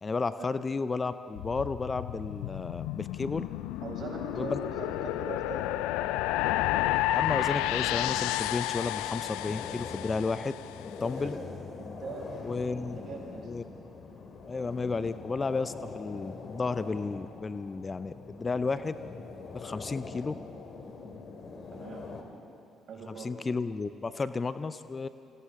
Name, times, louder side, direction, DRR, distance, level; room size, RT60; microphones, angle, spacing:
voice 1, 0.0-3.4 4.3-4.6 7.1-10.5 10.9-11.3 12.4-13.0 13.4-13.6 14.5-18.9 19.5-20.3 23.1-25.1, left 4 dB, 30° left, 13 dB, 0.6 m, -32 dB
sound 1, 1.4-10.7, left 15 dB, 70° left, 0.4 m, -31 dB
voice 2, 3.8-5.7 11.1-11.4 11.8-13.8 21.7-22.1 22.9-23.3, right 4 dB, 55° right, -1 dB, 6.2 m, -42 dB
sound 2, 5.3-22.2, left 4 dB, 50° left, 2.4 m, -44 dB
29.0 x 25.0 x 3.8 m, 2.6 s
hypercardioid pair, 50°, 0 cm